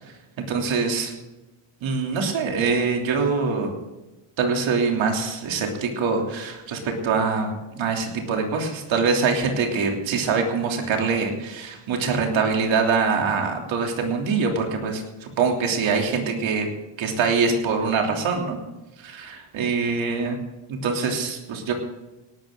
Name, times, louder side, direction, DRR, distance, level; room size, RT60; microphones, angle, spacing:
voice 1, 0.5-1.1 1.8-3.7 4.4-16.7 17.0-18.6 19.0-20.4 20.7-21.7, right 5 dB, 65° right, 2 dB, 3.2 m, -24 dB
18.0 x 12.5 x 3.8 m, 1.1 s
cardioid pair, 150°, 49 cm